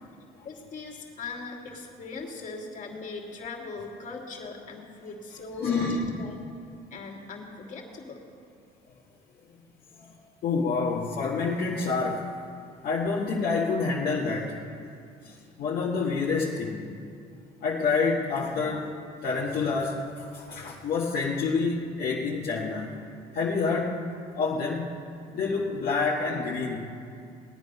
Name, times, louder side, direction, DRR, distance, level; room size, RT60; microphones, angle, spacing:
voice 1, 0.4-6.4 6.9-8.2, left 3 dB, 50° left, 0 dB, 2.7 m, -40 dB
voice 2, 5.6-6.2 9.9-12.3 12.8-14.6 15.2-16.8 17.6-22.9 23.3-24.0 24.3-24.9 25.3-26.9, left 4 dB, 65° left, -4 dB, 1.6 m, -28 dB
19.5 x 10.0 x 5.5 m, 2.4 s
cardioid pair, 110°, 17 cm